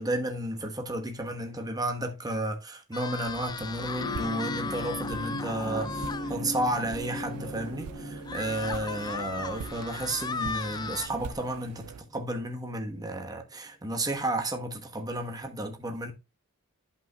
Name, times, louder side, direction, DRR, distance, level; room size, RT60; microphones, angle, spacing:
voice 1, 0.0-11.8 12.1-16.1, right 1 dB, 15° right, 1.0 m, -32 dB
sound 1, 2.9-6.3 6.8-6.9 7.2-7.3 8.3-11.1, left 5 dB, 20° left, 0.3 m, -36 dB
sound 2, 3.3-12.0, right 6 dB, 75° right, 0.4 m, -43 dB
sound 3, 3.7-12.3 13.5-13.6, left 1 dB, 55° left, 2.4 m, -39 dB
11.0 x 5.4 x 2.2 m
head